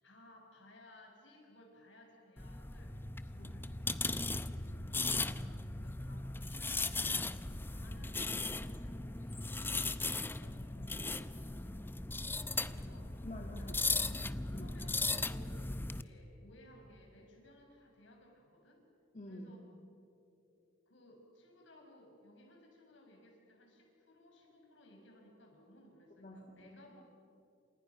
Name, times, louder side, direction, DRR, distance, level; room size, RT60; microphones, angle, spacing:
voice 1, 0.0-3.0 3.2-4.2 5.7-7.3 7.6-11.9 12.6-13.3 13.6-14.2 14.5-18.8 19.3-19.7 20.9-27.0, left 1 dB, 75° left, 1 dB, 6.2 m, -60 dB
sound 1, 2.4-16.0, left 3 dB, 10° left, 0.6 m, -37 dB
voice 2, 4.7-5.7 12.5-12.8 13.2-13.8 14.1-14.8 19.1-19.5 26.2-26.8, left 1 dB, 40° left, 0 dB, 2.3 m, -50 dB
28.5 x 27.5 x 6.0 m, 2.7 s
head